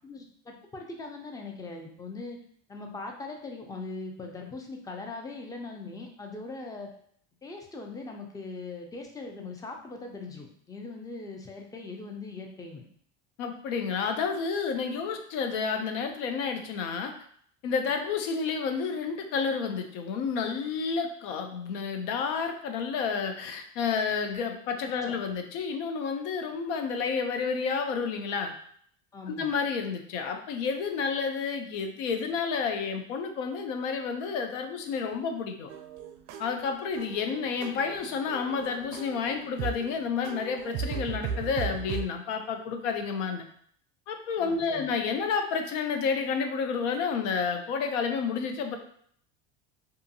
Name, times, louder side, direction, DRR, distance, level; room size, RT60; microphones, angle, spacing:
voice 1, 0.0-2.4 2.7-6.9 7.4-12.8 25.1-25.2 29.1-29.5 44.4-44.9, left 3 dB, 10° left, 2 dB, 0.3 m, -40 dB
voice 2, 13.4-17.1 17.6-28.5 29.3-35.7 36.4-43.4 44.1-48.8, left 5 dB, 85° left, 5 dB, 0.6 m, -30 dB
sound 1, 35.7-42.0, right 6 dB, 60° right, 0.4 m, -37 dB
2.7 x 2.4 x 2.6 m, 0.62 s
supercardioid pair, 110°, 36 cm